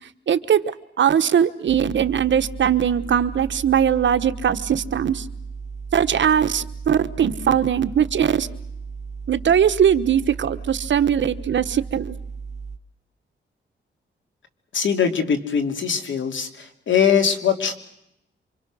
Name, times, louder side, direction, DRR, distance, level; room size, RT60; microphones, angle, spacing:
voice 1, 0.3-0.6 1.0-5.3 5.9-8.5 9.3-12.1, right 8 dB, 65° right, 10 dB, 1.2 m, -20 dB
sound 1, 1.7-12.8, right 5 dB, 35° right, 1.1 m, -35 dB
voice 2, 14.7-17.7, left 7 dB, 70° left, 6 dB, 3.0 m, -21 dB
28.0 x 25.5 x 6.4 m, 0.81 s
wide cardioid pair, 120°, 20 cm